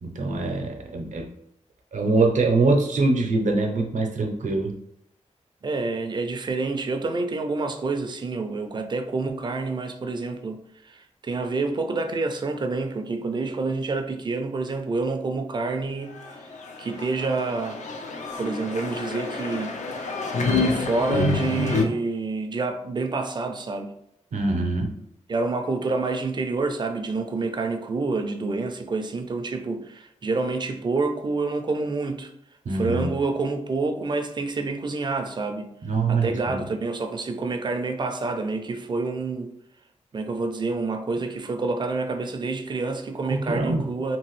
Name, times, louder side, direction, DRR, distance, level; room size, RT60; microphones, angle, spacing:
voice 1, 0.0-1.3 1.9-4.7 24.3-24.9 32.6-33.1 35.8-36.6 43.3-43.8, right 3 dB, 85° right, 0.6 m, -23 dB
voice 2, 5.6-16.2 16.8-17.9 18.4-19.7 20.5-23.9 25.3-32.3 32.7-35.7 36.1-39.5 40.1-44.2, right 3 dB, 40° right, 0.3 m, -28 dB
sound 1, 16.2-21.8, left 3 dB, 75° left, 0.4 m, -27 dB
2.9 x 2.5 x 3.1 m
wide cardioid pair, 125°, 12 cm